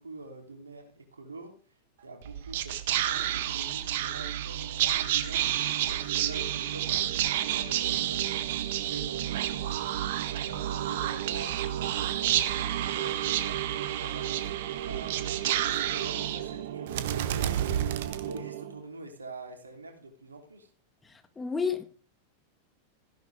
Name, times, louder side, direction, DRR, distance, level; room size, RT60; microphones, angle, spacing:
voice 1, 0.0-1.6 2.0-9.8 10.4-17.7 18.2-20.7, right 2 dB, 75° right, 3.5 m, -46 dB
Whispering, 2.2-18.8, right 12 dB, 55° right, 1.4 m, -30 dB
voice 2, 21.0-21.8, left 5 dB, 15° left, 1.9 m, -31 dB
15.5 x 11.5 x 3.6 m
figure-of-eight pair, 90°, 0 cm